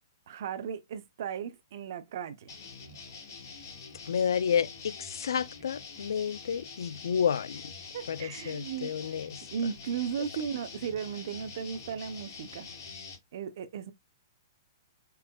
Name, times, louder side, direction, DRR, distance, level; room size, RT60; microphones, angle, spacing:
voice 1, 0.3-2.5 7.9-8.9 9.5-12.7 13.3-13.9, right 7 dB, 50° right, 0.8 m, -36 dB
sound 1, 2.5-13.2, left 5 dB, 55° left, 2.8 m, -46 dB
voice 2, 4.1-7.6 8.1-9.4, left 7 dB, 85° left, 0.4 m, -30 dB
4.6 x 3.4 x 2.2 m
hypercardioid pair, 165°, 2 cm